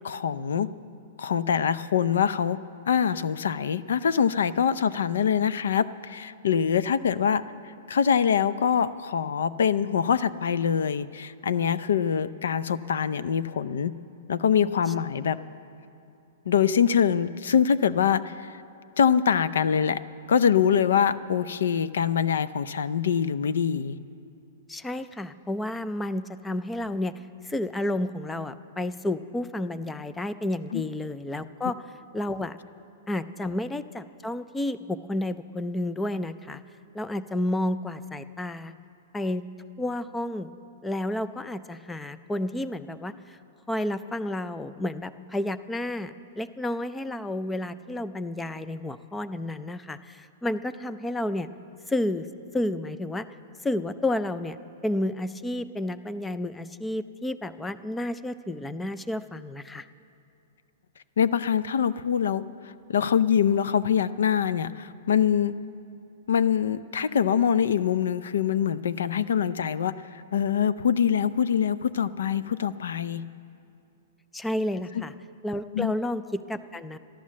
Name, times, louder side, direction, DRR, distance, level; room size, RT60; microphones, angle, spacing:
voice 1, 0.0-0.7 1.2-2.6 2.9-7.4 7.9-13.9 14.3-15.4 16.5-18.6 19.0-20.0 20.3-24.0 30.7-30.8 61.2-62.4 62.9-65.5 66.3-69.9 70.3-73.2 74.9-75.0 75.7-75.9, left 8 dB, 90° left, 14 dB, 0.5 m, -24 dB
voice 2, 24.7-27.1 27.4-31.8 32.1-32.6 33.1-36.6 36.9-38.7 39.1-39.4 39.8-40.5 40.8-43.4 43.7-51.5 51.9-52.3 52.5-53.3 53.6-54.6 54.8-59.9 74.3-75.1 75.4-77.0, left 1 dB, 5° left, 13 dB, 0.3 m, -31 dB
13.5 x 11.5 x 7.4 m, 2.6 s
hypercardioid pair, 170°, 0 cm